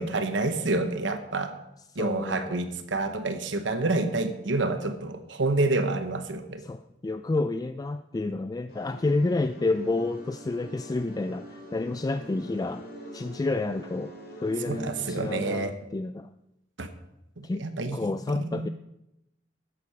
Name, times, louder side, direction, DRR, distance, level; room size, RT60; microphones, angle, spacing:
voice 1, 0.0-1.5 1.9-6.6 14.7-15.7 16.8-16.9 17.4-18.0 18.3-18.7, right 2 dB, 75° right, 8 dB, 1.0 m, -28 dB
voice 2, 1.9-2.6 6.6-12.8 13.1-14.1 14.4-16.3 17.4-17.7 17.9-18.7, left 2 dB, 20° left, 10 dB, 0.3 m, -29 dB
sound 1, 8.7-15.6, equal, 60° left, 3.1 m, -44 dB
13.0 x 8.5 x 4.9 m, 0.89 s
head